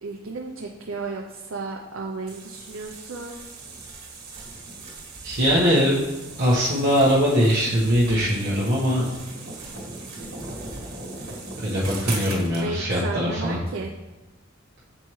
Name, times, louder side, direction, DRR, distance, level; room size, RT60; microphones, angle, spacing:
voice 1, 0.0-3.4 12.6-13.9, right 3 dB, 70° right, 1 dB, 0.6 m, -33 dB
sound 1, 2.3-12.7, right 3 dB, 85° right, 1.6 m, -38 dB
voice 2, 5.2-6.0 6.4-9.1 11.6-13.6, equal, 50° right, -8 dB, 1.2 m, -21 dB
7.5 x 4.4 x 3.1 m, 1.1 s
head